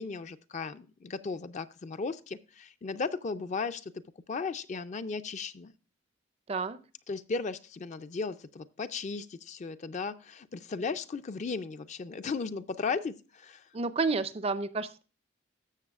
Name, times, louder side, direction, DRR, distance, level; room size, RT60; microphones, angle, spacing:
voice 1, 0.0-4.0 4.3-5.7 7.1-13.7, left 4 dB, 35° left, 0.4 m, -36 dB
voice 2, 13.7-15.0, right 4 dB, 30° right, 0.4 m, -30 dB
13.0 x 7.3 x 2.4 m
head